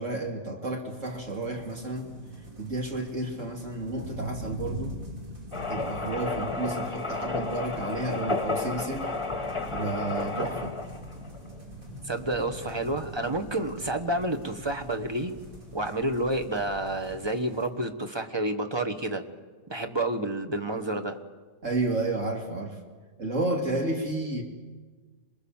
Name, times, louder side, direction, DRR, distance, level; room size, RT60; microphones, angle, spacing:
voice 1, 0.0-2.1 2.6-5.0 5.7-9.1 9.7-10.8 21.6-22.8 23.2-24.4, right 2 dB, 65° right, 1 dB, 2.8 m, -31 dB
sound 1, 0.9-17.7, right 1 dB, 85° right, 3.9 m, -43 dB
sound 2, 5.5-17.3, left 3 dB, 25° left, 1.3 m, -34 dB
voice 2, 12.0-15.3 15.7-19.2 19.7-21.2, right 1 dB, 20° right, 7 dB, 1.4 m, -29 dB
27.0 x 22.0 x 7.3 m, 1.4 s
omnidirectional pair, 1.4 m